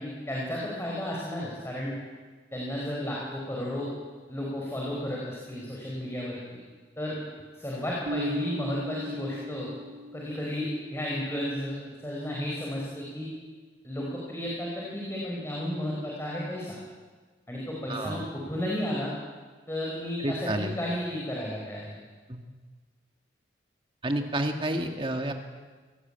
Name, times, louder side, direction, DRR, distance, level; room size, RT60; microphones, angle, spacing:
voice 1, 0.0-1.9 2.5-3.9 4.3-6.6 7.0-7.2 7.5-9.7 10.1-13.3 13.8-16.8 17.5-19.1 19.7-22.0, left 1 dB, 15° left, -4 dB, 4.7 m, -33 dB
Bass guitar, 8.1-10.7, left 1 dB, 85° right, 1.7 m, -37 dB
voice 2, 17.9-18.2 20.2-20.8 22.3-22.4 24.0-25.3, right 1 dB, 30° right, 5 dB, 1.8 m, -30 dB
24.5 x 17.5 x 8.8 m, 1.4 s
head